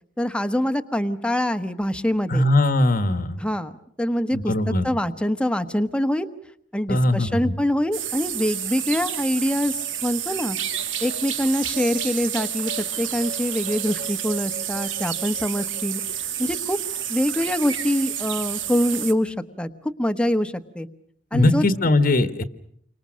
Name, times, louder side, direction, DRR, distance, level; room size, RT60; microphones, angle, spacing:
voice 1, 0.2-2.5 3.4-3.7 4.0-6.3 6.7-10.6 11.0-12.7 13.0-16.0 16.4-16.8 17.1-19.7 20.0-20.9 21.3-21.6, left 1 dB, 5° left, 9 dB, 1.2 m, -24 dB
voice 2, 2.3-3.4 4.3-4.9 6.9-7.3 21.3-22.4, left 2 dB, 50° left, 11 dB, 1.4 m, -20 dB
sound 1, 7.9-19.1, right 9 dB, 85° right, 2.0 m, -29 dB
30.0 x 25.0 x 6.3 m, 0.66 s
head